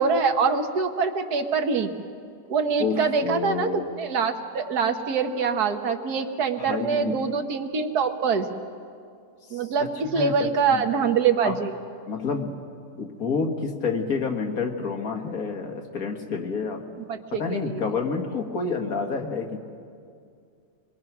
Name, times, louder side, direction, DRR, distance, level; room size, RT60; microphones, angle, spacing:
voice 1, 0.0-1.9 2.5-8.5 9.5-11.7 17.1-17.8, right 5 dB, 70° right, 6 dB, 1.7 m, -24 dB
voice 2, 2.8-3.9 6.6-7.2 9.5-10.8 11.4-11.6 12.1-12.5 13.0-16.8 17.3-19.6, left 5 dB, 60° left, 3 dB, 2.0 m, -29 dB
24.5 x 21.5 x 6.0 m, 2.3 s
omnidirectional pair, 1.8 m